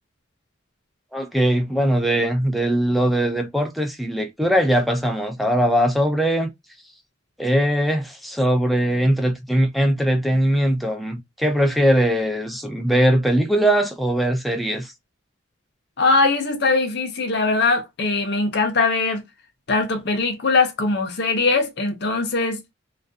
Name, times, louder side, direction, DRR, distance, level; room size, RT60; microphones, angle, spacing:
voice 1, 1.1-6.5 7.4-14.9, equal, ahead, 0.3 m, -20 dB
voice 2, 16.0-19.2 19.7-22.6, left 3 dB, 55° left, 0.6 m, -21 dB
2.3 x 2.2 x 2.5 m
head